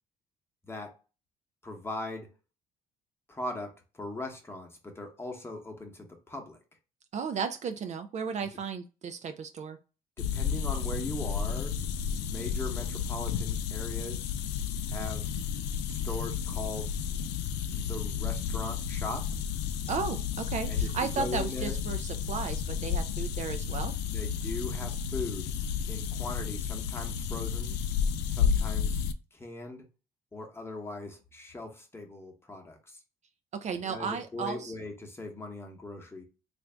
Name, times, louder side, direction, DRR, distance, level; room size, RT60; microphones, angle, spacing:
voice 1, 1.6-2.3 3.3-6.6 8.4-8.5 10.2-14.3 14.9-15.3 15.9-17.0 17.7-19.3 20.7-21.8 24.1-25.5 25.9-27.8 28.3-29.0 29.3-29.9 30.3-33.0 33.8-36.2, left 2 dB, 15° left, 0.9 m, -40 dB
voice 2, 7.1-9.8 19.9-23.9 33.6-34.7, right 5 dB, 45° right, 0.4 m, -34 dB
sound 1, 10.2-29.1, left 7 dB, 90° left, 0.4 m, -32 dB
3.4 x 2.6 x 3.3 m
cardioid pair, 110°, 17 cm